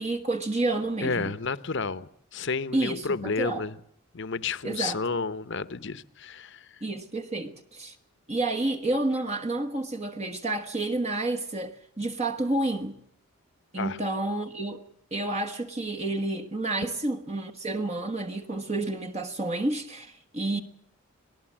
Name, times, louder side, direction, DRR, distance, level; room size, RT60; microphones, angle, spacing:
voice 1, 0.0-1.3 2.7-3.6 4.6-5.0 6.8-7.9 8.3-13.0 13.7-14.8 15.1-20.6, right 2 dB, 30° right, 1.4 m, -30 dB
voice 2, 1.0-3.8 4.1-6.7 13.8-14.0 16.8-16.9, left 4 dB, 55° left, 0.9 m, -31 dB
25.0 x 19.0 x 7.4 m
head